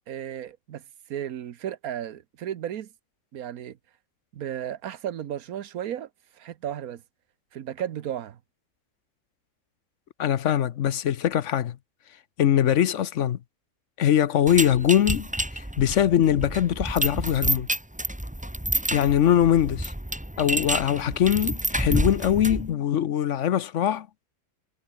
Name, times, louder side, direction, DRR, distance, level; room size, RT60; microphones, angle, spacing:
voice 1, 0.1-0.8 1.1-2.9 3.3-3.8 4.3-6.1 6.4-7.0 7.5-8.4, right 10 dB, 85° right, 1.4 m, -34 dB
voice 2, 10.2-11.8 12.4-13.4 14.0-15.3 15.5-17.7 18.9-19.9 20.4-24.1, left 10 dB, 60° left, 1.0 m, -22 dB
sound 1, 14.5-22.7, right 1 dB, 5° right, 1.5 m, -29 dB
omnidirectional pair, 1.5 m